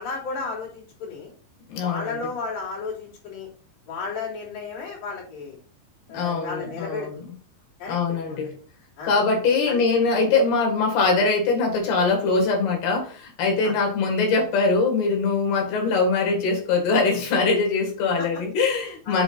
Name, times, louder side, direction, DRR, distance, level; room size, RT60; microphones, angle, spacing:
voice 1, 0.0-1.3 1.8-3.5 3.9-5.6 6.1-7.1 7.8-8.5 9.0-9.1 9.7-9.8 13.6-13.7 18.2-18.3 19.1-19.2, left 4 dB, 65° left, -3 dB, 4.9 m, -33 dB
voice 2, 1.7-2.2 6.1-7.2 7.9-8.5 9.0-19.2, left 4 dB, 85° left, 1 dB, 4.0 m, -22 dB
7.9 x 3.9 x 5.7 m, 0.42 s
omnidirectional pair, 4.4 m